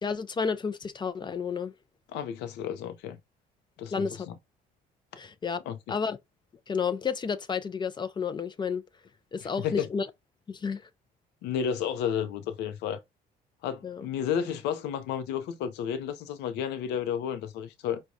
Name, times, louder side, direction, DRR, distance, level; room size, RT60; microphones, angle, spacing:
voice 1, 0.0-1.7 3.9-4.3 5.2-5.6 5.9-6.2 6.7-8.8 9.3-10.1 10.5-10.8 13.8-14.1, left 5 dB, 25° left, 0.4 m, -31 dB
voice 2, 2.1-3.2 3.8-4.4 5.7-6.0 9.4-9.9 11.4-13.0 13.6-18.0, left 8 dB, 85° left, 0.6 m, -32 dB
4.7 x 2.2 x 2.6 m
cardioid pair, 110°, 17 cm